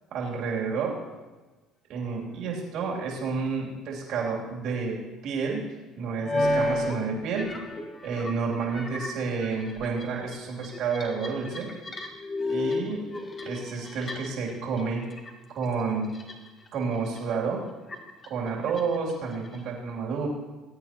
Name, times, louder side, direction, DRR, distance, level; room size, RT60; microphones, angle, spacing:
voice 1, 0.1-0.9 1.9-5.0 5.2-5.6 6.0-7.5 8.0-11.7 12.5-13.0 13.4-15.0 15.5-16.1 16.7-17.6 18.3-20.3, right 5 dB, 65° right, -2 dB, 3.1 m, -30 dB
sound 1, 3.4-3.5 6.2-7.0 7.2-14.5 14.8-15.3 15.6-16.7 17.0-17.3 17.9-19.6, left 2 dB, 30° left, 1.7 m, -33 dB
20.5 x 8.9 x 3.0 m, 1.2 s
supercardioid pair, 85°, 0 cm